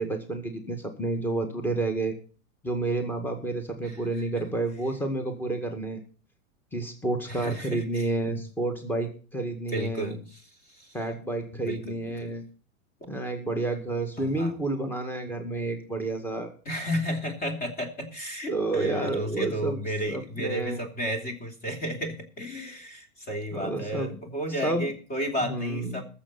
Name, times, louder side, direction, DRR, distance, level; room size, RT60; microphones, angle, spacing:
voice 1, 0.0-2.2 2.6-6.0 6.7-10.2 10.9-12.4 13.1-16.5 18.5-19.8 20.1-20.8 23.5-24.2 24.6-24.9 25.4-26.0, right 2 dB, 5° left, 5 dB, 1.9 m, -30 dB
voice 2, 7.3-8.4 9.7-10.4 10.7-11.0 11.5-12.3 14.2-14.5 16.6-26.0, equal, 20° left, 4 dB, 3.0 m, -33 dB
21.0 x 7.2 x 4.2 m, 0.38 s
hypercardioid pair, 125°, 42 cm